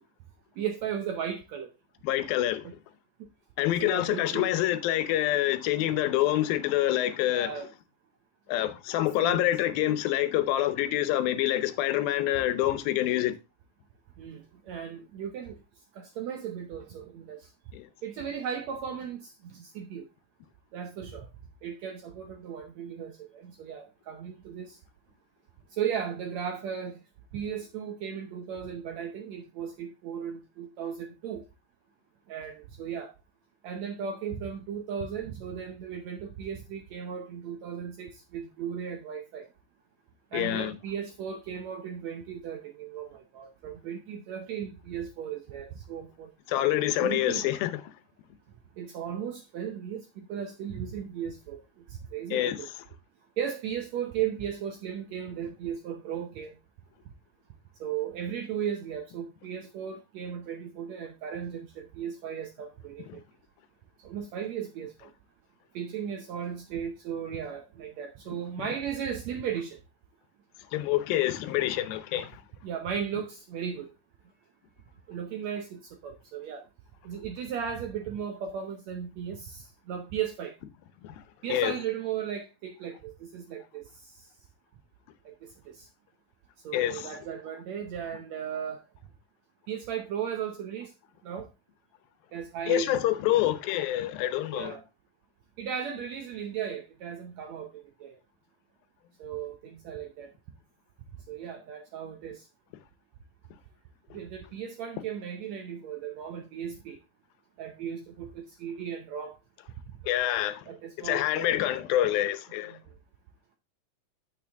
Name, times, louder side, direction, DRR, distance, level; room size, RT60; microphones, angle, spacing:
voice 1, 0.6-1.7 3.7-4.5 7.3-7.7 9.2-9.5 14.2-15.6 15.9-17.4 18.0-20.1 20.7-21.3 21.6-24.8 25.7-27.0 27.3-31.4 32.3-33.1 33.6-39.5 40.3-46.3 47.0-47.5 48.8-51.6 51.9-52.7 53.4-56.5 57.8-63.2 64.0-65.1 65.7-69.8 72.6-73.9 75.1-76.6 77.0-80.6 81.4-83.8 85.2-85.3 85.7-85.9 86.6-88.8 89.7-90.9 91.2-91.5 92.3-93.0 94.5-94.8 95.6-98.1 99.2-100.3 101.3-102.4 104.1-107.0 107.6-109.4 110.7-111.6 112.7-112.8, right 8 dB, 75° right, 1.6 m, -36 dB
voice 2, 2.0-2.7 3.6-7.5 8.5-13.3 17.7-17.9 40.3-40.7 46.5-47.9 52.3-52.6 63.1-63.2 70.7-72.4 81.0-81.2 81.5-81.7 86.7-87.2 92.7-94.8 110.0-110.7 111.0-112.8, left 13 dB, 85° left, 2.6 m, -27 dB
8.4 x 6.7 x 3.4 m
omnidirectional pair, 4.1 m